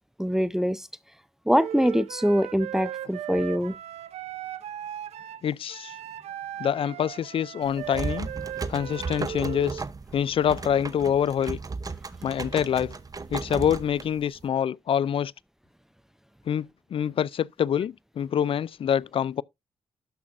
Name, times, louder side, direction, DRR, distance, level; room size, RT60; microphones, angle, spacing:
voice 1, 0.2-0.9 1.5-3.8, equal, 5° right, 0.6 m, -24 dB
Wind instrument woodwind instrument, 1.5-9.9, right 11 dB, 85° right, 0.7 m, -37 dB
voice 2, 5.4-5.9 6.6-8.3 8.7-9.8 10.1-11.6 12.2-12.9 13.3-15.3 16.5-16.7 16.9-19.4, left 9 dB, 60° left, 0.4 m, -26 dB
sound 1, 7.6-14.5, right 4 dB, 35° right, 0.8 m, -35 dB
12.5 x 5.9 x 2.5 m
cardioid pair, 60°, 11 cm